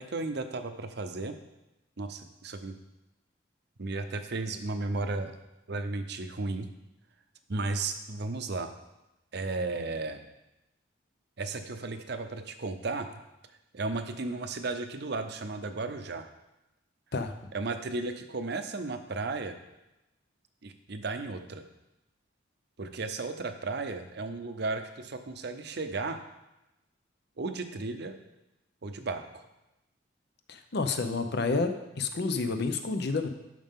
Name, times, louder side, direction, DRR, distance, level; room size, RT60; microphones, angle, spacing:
voice 1, 0.0-1.3 2.0-2.8 3.8-5.4 5.7-6.7 7.5-8.7 9.3-10.2 11.4-13.1 13.7-16.2 17.5-19.6 20.6-21.6 22.8-26.2 27.4-28.2 28.8-29.4, right 3 dB, 60° right, 8 dB, 0.7 m, -34 dB
voice 2, 30.5-33.3, left 3 dB, 60° left, 8 dB, 0.7 m, -29 dB
12.5 x 5.2 x 3.7 m, 0.94 s
head